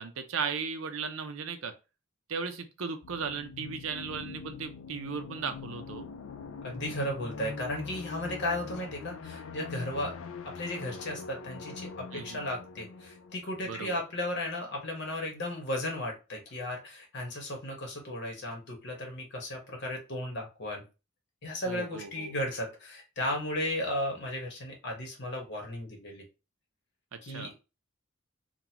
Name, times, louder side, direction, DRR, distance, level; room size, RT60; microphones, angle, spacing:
voice 1, 0.0-1.7 2.3-6.1 12.1-12.4 13.6-14.0 21.7-22.3 27.1-27.5, right 5 dB, 75° right, 9 dB, 0.5 m, -36 dB
sound 1, 3.0-14.6, left 5 dB, 85° left, 0.4 m, -43 dB
voice 2, 6.6-10.1 10.4-20.8 21.4-26.2 27.2-27.5, left 1 dB, 60° left, 1 dB, 1.2 m, -35 dB
3.8 x 2.3 x 2.8 m, 0.30 s
head